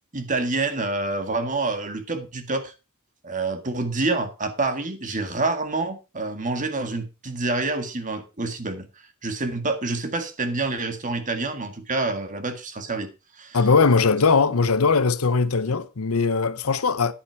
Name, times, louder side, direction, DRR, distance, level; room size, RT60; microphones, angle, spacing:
voice 1, 0.1-2.7 3.2-8.9 9.2-13.1 13.4-13.6, right 3 dB, 35° right, 1.7 m, -27 dB
voice 2, 13.5-17.1, left 4 dB, 80° left, 0.8 m, -20 dB
10.5 x 8.7 x 4.5 m
head